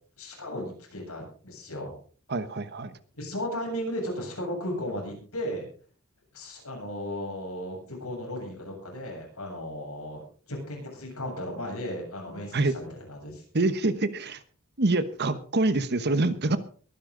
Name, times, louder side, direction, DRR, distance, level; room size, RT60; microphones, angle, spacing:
voice 1, 0.2-2.0 3.2-5.7 6.3-13.4, left 1 dB, 75° left, 0 dB, 7.8 m, -35 dB
voice 2, 2.3-3.0 12.5-12.7 13.5-14.4 14.8-16.6, right 2 dB, 50° right, 12 dB, 1.1 m, -25 dB
23.0 x 10.0 x 3.9 m, 0.43 s
head